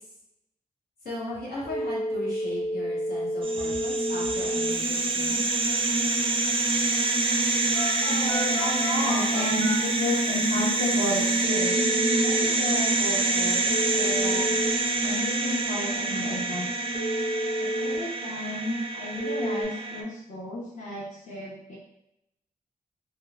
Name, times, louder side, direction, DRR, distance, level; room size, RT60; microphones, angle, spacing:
voice 1, 1.0-5.7, left 1 dB, 80° left, -7 dB, 1.1 m, -38 dB
Telephone, 1.6-12.4 13.7-14.7 16.9-18.0 19.2-19.6, equal, 30° left, 1.1 m, -32 dB
sound 1, 3.4-20.0, right 2 dB, 35° right, 0.4 m, -26 dB
voice 2, 8.0-11.9 12.2-14.5 15.0-16.7 17.6-21.8, left 1 dB, 55° left, -6 dB, 0.8 m, -32 dB
3.0 x 2.3 x 2.4 m, 0.83 s
cardioid pair, 45°, 15 cm